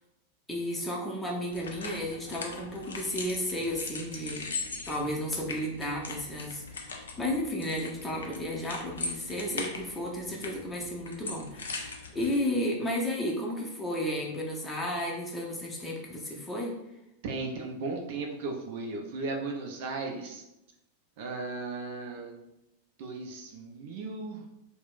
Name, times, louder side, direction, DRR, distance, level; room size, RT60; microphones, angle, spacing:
voice 1, 0.5-4.5 4.9-16.7, left 1 dB, 10° left, -3 dB, 0.6 m, -33 dB
sound 1, 1.5-12.4, left 3 dB, 70° left, 0.4 m, -40 dB
voice 2, 17.2-20.4 21.2-22.4 23.0-24.5, right 3 dB, 50° right, 1 dB, 0.4 m, -36 dB
2.3 x 2.0 x 3.6 m, 0.88 s
figure-of-eight pair, 90°, 0 cm